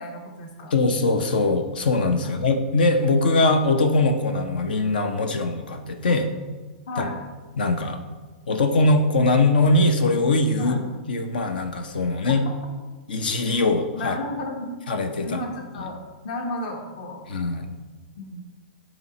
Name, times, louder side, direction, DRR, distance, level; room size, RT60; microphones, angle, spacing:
voice 1, 0.0-0.7 2.2-2.3 6.1-6.2 6.9-7.2 10.6-10.8 12.2-12.5 13.9-14.8 15.2-16.0 16.2-17.2 18.2-18.4, left 1 dB, 55° left, 2 dB, 1.2 m, -33 dB
voice 2, 0.7-6.3 7.0-7.1 7.6-8.0 8.5-10.8 11.1-12.4 13.1-14.1 14.9-15.4 15.8-15.9 17.3-17.7, left 2 dB, 75° left, 7 dB, 0.7 m, -21 dB
8.9 x 3.0 x 4.3 m, 1.3 s
hypercardioid pair, 115°, 5 cm